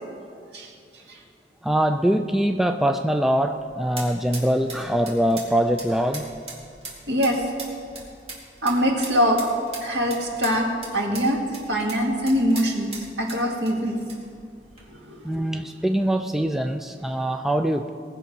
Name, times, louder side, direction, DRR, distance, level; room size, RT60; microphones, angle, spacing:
voice 1, 1.6-6.2 15.2-17.9, right 1 dB, ahead, 5 dB, 0.3 m, -23 dB
sound 1, 3.2-14.8, right 3 dB, 35° right, 2.5 m, -41 dB
voice 2, 7.1-7.5 8.6-9.5 9.8-14.0 14.9-15.3, equal, 75° right, 0 dB, 2.0 m, -23 dB
19.5 x 6.9 x 5.3 m, 2.3 s
head